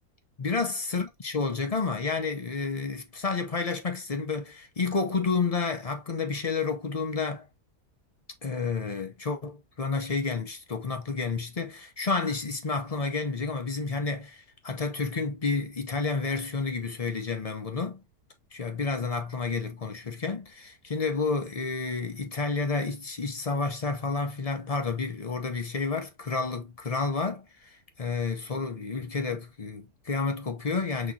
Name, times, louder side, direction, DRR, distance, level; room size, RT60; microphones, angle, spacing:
voice 1, 0.4-7.5 8.4-18.0 18.5-31.1, left 4 dB, 40° left, 0.5 m, -30 dB
6.1 x 3.1 x 2.7 m
omnidirectional pair, 1.6 m